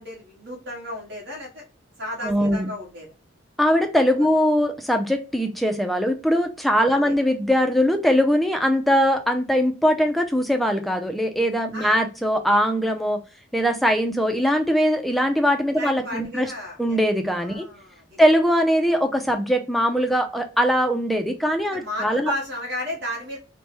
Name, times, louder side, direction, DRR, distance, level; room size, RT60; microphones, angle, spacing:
voice 1, 0.0-1.6 2.0-3.1 6.9-7.1 11.7-12.0 15.7-17.0 17.4-18.2 21.7-23.4, left 1 dB, 60° right, -2 dB, 1.5 m, -33 dB
voice 2, 2.2-2.7 3.6-13.2 13.5-16.5 16.8-17.7 18.2-22.3, equal, ahead, 5 dB, 0.4 m, -21 dB
3.3 x 2.1 x 2.9 m, 0.32 s
head